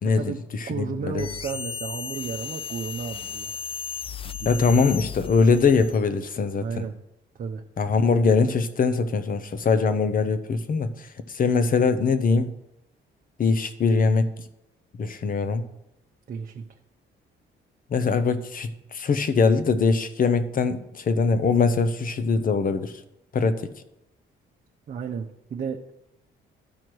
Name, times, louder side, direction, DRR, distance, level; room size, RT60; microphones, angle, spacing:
voice 1, 0.0-1.3 4.5-6.8 7.8-12.5 13.4-14.3 15.0-15.6 17.9-22.9 23.3-23.7, left 4 dB, 45° left, 11 dB, 0.8 m, -22 dB
voice 2, 0.7-3.5 4.2-4.5 6.5-6.9 7.3-7.6 16.3-16.6 24.9-25.8, right 6 dB, 45° right, 2 dB, 0.7 m, -33 dB
sound 1, 1.2-6.1, left 7 dB, 30° left, 0.4 m, -35 dB
12.0 x 4.5 x 4.7 m, 0.86 s
cardioid pair, 90°, 20 cm